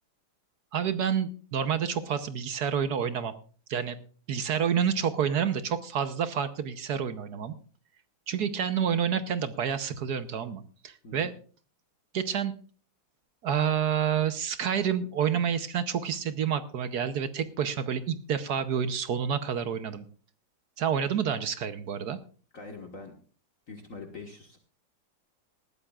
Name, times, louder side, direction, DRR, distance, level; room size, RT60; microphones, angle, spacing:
voice 1, 0.7-3.3 3.7-4.0 4.3-7.5 8.3-11.3 12.1-12.5 13.4-20.1 20.8-22.2, right 8 dB, 60° right, 12 dB, 1.3 m, -29 dB
voice 2, 22.5-23.1 23.7-24.6, left 3 dB, 45° left, 4 dB, 1.8 m, -43 dB
19.5 x 13.5 x 2.4 m, 0.40 s
omnidirectional pair, 2.1 m